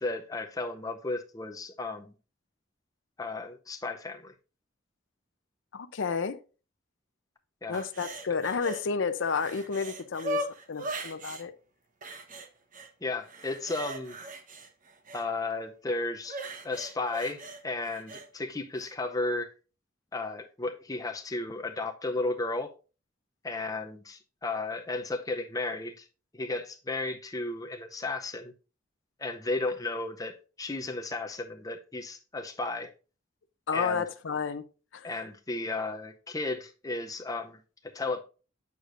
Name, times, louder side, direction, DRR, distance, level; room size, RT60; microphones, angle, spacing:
voice 1, 0.0-2.1 3.2-4.3 7.6-7.8 13.0-14.2 15.1-19.5 20.1-22.7 23.4-26.1 26.3-28.5 29.2-32.9 33.7-34.0 35.0-38.2, left 2 dB, 20° left, 0.5 m, -34 dB
voice 2, 5.7-6.4 7.7-11.5 33.7-34.6 34.9-35.1, left 5 dB, 75° left, 0.6 m, -31 dB
sound 1, 7.7-8.8 9.2-11.4 12.0-12.9 13.2-15.3 16.2-18.3 18.8-18.9, right 1 dB, 45° right, 1.0 m, -39 dB
8.3 x 6.4 x 2.5 m
head